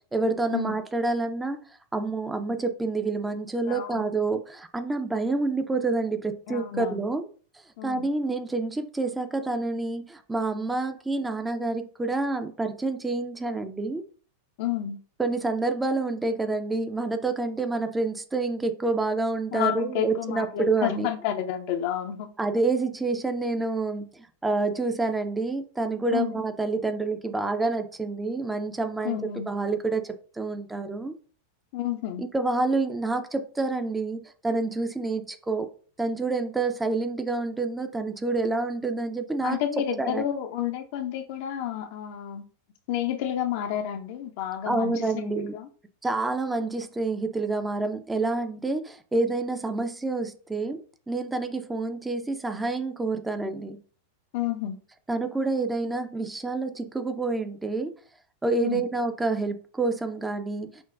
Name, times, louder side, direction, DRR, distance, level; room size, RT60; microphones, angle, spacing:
voice 1, 0.1-1.6 1.9-7.3 7.8-14.0 15.2-21.1 22.4-29.2 29.5-31.1 32.2-35.7 36.0-39.6 40.0-40.2 44.7-45.5 46.0-53.8 55.1-57.9 58.4-60.8, right 3 dB, 10° right, 0.4 m, -28 dB
voice 2, 3.7-4.1 6.5-7.0 7.8-8.1 14.6-15.0 19.5-22.3 26.1-26.4 29.0-29.5 31.7-32.2 39.4-42.4 42.9-45.7 54.3-54.8 58.6-58.8, left 10 dB, 50° left, 0.5 m, -30 dB
5.9 x 2.2 x 2.4 m
figure-of-eight pair, 90°, 0 cm